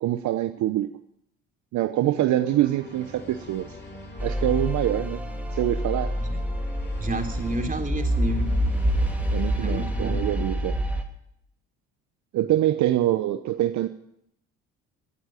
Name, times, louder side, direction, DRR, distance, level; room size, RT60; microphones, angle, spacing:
voice 1, 0.0-0.9 1.7-3.8 4.2-5.2 5.5-6.2 9.3-10.8 12.3-13.9, right 13 dB, 70° right, 9 dB, 0.9 m, -25 dB
sound 1, 2.2-10.4, left 1 dB, 35° left, 6.4 m, -43 dB
sound 2, 4.2-11.0, equal, 5° right, 2.8 m, -27 dB
voice 2, 7.0-8.5 9.6-10.2, right 3 dB, 25° right, 5 dB, 3.3 m, -31 dB
17.0 x 8.9 x 8.9 m, 0.75 s
supercardioid pair, 65°, 31 cm